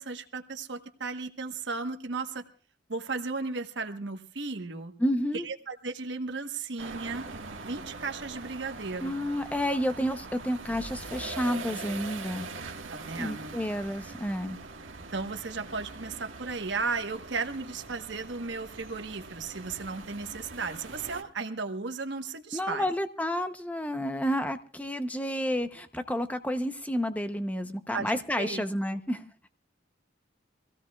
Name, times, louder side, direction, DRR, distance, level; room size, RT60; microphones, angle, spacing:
voice 1, 0.0-2.4 2.9-4.9 5.4-7.3 7.6-9.1 12.9-13.6 15.1-22.9 27.9-28.1 28.4-28.6 28.9-29.0, right 4 dB, 65° right, 6 dB, 1.2 m, -35 dB
voice 2, 5.0-5.5 9.0-12.5 13.2-14.6 22.5-29.3, equal, 10° left, 9 dB, 0.8 m, -30 dB
sound 1, 6.8-21.2, right 3 dB, 90° right, 1.5 m, -42 dB
25.0 x 16.5 x 2.4 m, 0.41 s
head